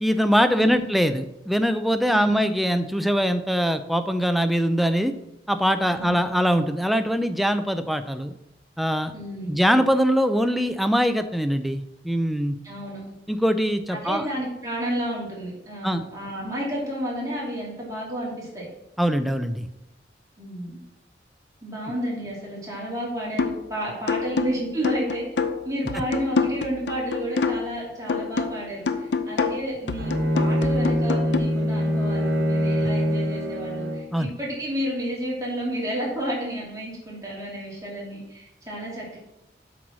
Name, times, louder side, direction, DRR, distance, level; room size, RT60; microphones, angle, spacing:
voice 1, 0.0-5.1 5.5-8.3 8.8-9.1 9.5-12.5 13.3-14.3 15.8-16.0 19.0-19.7 34.1-34.3, equal, ahead, 9 dB, 0.4 m, -22 dB
voice 2, 0.5-0.9 2.1-2.4 5.9-6.2 9.1-9.6 12.6-13.0 13.9-18.7 20.4-20.8 21.6-25.2 25.6-39.2, equal, 20° right, -5 dB, 2.9 m, -31 dB
sound 1, 23.4-23.7 24.1-27.8 28.1-31.4, left 4 dB, 90° left, 0.6 m, -27 dB
Bowed string instrument, 30.0-34.2, equal, 65° right, 1.5 m, -24 dB
8.0 x 4.7 x 6.1 m, 0.87 s
head